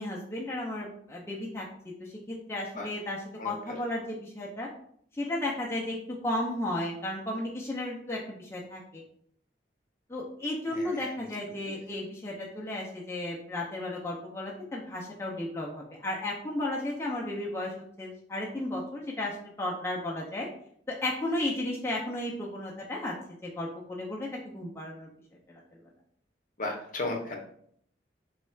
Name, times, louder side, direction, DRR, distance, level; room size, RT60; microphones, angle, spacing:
voice 1, 0.0-1.7 2.0-4.7 5.2-9.0 10.1-20.5 20.9-23.1 23.4-25.1 25.5-25.6, left 1 dB, 15° left, -4 dB, 0.5 m, -34 dB
voice 2, 10.7-11.1 26.6-27.4, left 2 dB, 45° left, 1 dB, 0.7 m, -34 dB
3.1 x 2.3 x 4.3 m, 0.66 s
head